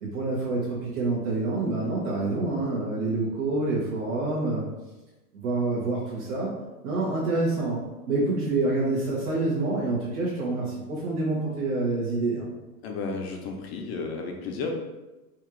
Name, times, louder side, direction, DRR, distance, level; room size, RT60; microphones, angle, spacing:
voice 1, 0.0-4.6 5.3-6.5 6.8-7.8 8.1-12.5, right 2 dB, 65° right, -7 dB, 1.2 m, -27 dB
voice 2, 12.8-14.8, left 4 dB, 40° left, 2 dB, 0.6 m, -32 dB
4.2 x 2.5 x 3.0 m, 1.1 s
hypercardioid pair, 145°, 48 cm